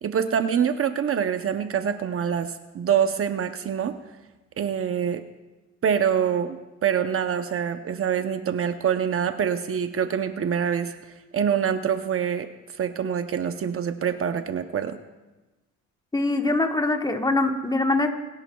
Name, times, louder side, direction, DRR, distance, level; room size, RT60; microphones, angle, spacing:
voice 1, 0.0-4.0 4.6-5.2 5.8-11.0 11.3-12.5 12.8-15.0, right 8 dB, 45° right, 9 dB, 0.7 m, -25 dB
voice 2, 16.1-18.1, left 2 dB, 15° left, 5 dB, 1.2 m, -23 dB
28.5 x 10.5 x 2.3 m, 1.1 s
cardioid pair, 90°, 30 cm